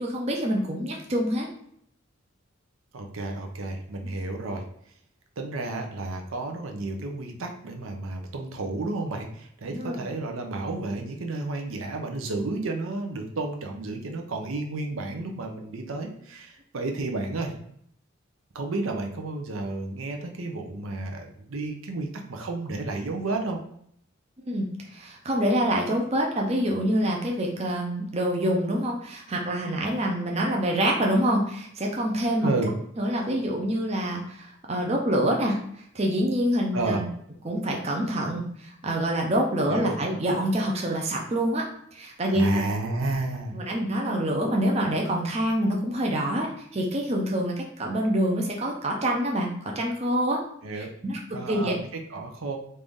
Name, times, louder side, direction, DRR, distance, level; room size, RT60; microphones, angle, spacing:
voice 1, 0.0-1.5 9.7-10.0 24.4-32.5 33.0-37.1 37.4-41.6 41.9-42.6 43.5-50.4 50.8-51.7, right 1 dB, 30° right, 0 dB, 0.5 m, -26 dB
voice 2, 2.9-4.6 5.4-17.5 18.5-23.6 32.4-32.7 36.7-37.0 39.7-40.0 42.3-43.6 50.6-50.9 51.3-52.6, right 2 dB, 75° right, 3 dB, 0.6 m, -31 dB
3.2 x 2.6 x 3.5 m, 0.68 s
head